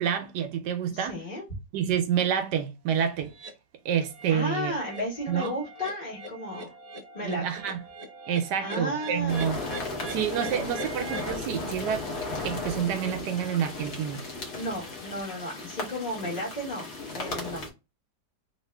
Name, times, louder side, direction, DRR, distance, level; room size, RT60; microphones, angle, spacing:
voice 1, 0.0-1.2 1.7-3.3 3.8-4.7 5.3-5.6 7.2-7.8 8.3-9.6 10.0-12.1 12.4-14.3, right 8 dB, 80° right, 1.1 m, -28 dB
voice 2, 0.9-1.4 4.3-6.7 7.1-7.4 8.6-9.5 14.5-16.9 17.1-17.7, left 1 dB, 30° left, 1.2 m, -33 dB
sound 1, 3.3-3.5 4.0-4.3 4.6-11.3, right 2 dB, 45° right, 0.5 m, -41 dB
sound 2, 9.1-15.2, left 5 dB, 70° left, 1.2 m, -45 dB
sound 3, 9.3-17.7, left 2 dB, 50° left, 1.1 m, -36 dB
2.9 x 2.8 x 3.2 m
omnidirectional pair, 1.8 m